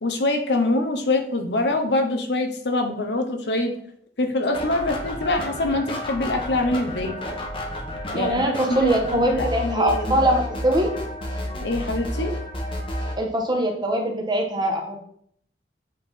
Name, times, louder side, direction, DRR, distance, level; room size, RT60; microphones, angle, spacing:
voice 1, 0.0-3.7 4.2-7.2 8.1-10.2 11.6-12.3, left 2 dB, 70° left, 5 dB, 1.0 m, -24 dB
sound 1, 4.5-13.2, left 1 dB, 30° left, 1.2 m, -31 dB
voice 2, 8.1-10.9 13.2-15.0, right 1 dB, 25° right, 1 dB, 1.3 m, -22 dB
7.8 x 4.4 x 3.7 m, 0.64 s
head